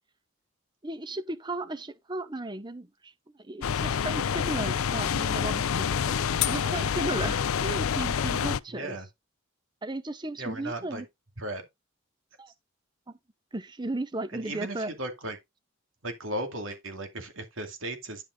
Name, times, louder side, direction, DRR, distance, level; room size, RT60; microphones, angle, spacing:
voice 1, 0.8-9.0 9.8-11.1 12.4-12.5 13.5-14.9, right 2 dB, 20° right, 0.8 m, -35 dB
sound 1, 3.6-8.6, left 7 dB, 90° left, 0.5 m, -27 dB
voice 2, 8.7-9.1 10.4-11.0 11.4-11.7 14.3-15.4 16.0-18.2, right 1 dB, 70° right, 2.4 m, -36 dB
10.5 x 5.5 x 3.7 m
head